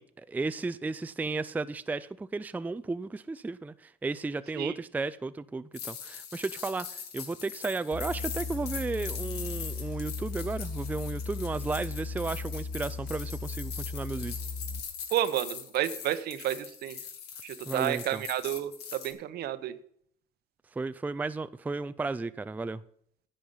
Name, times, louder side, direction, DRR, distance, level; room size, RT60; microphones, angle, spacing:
voice 1, 0.0-14.4 17.7-18.2 20.8-22.8, right 3 dB, 10° right, 0.4 m, -34 dB
sound 1, 5.7-19.1, left 7 dB, 75° left, 2.1 m, -42 dB
sound 2, 7.9-14.8, left 4 dB, 50° left, 2.6 m, -37 dB
voice 2, 15.1-17.0 17.4-19.8, right 12 dB, 70° right, 0.9 m, -31 dB
10.5 x 8.5 x 5.5 m
cardioid pair, 110°, 17 cm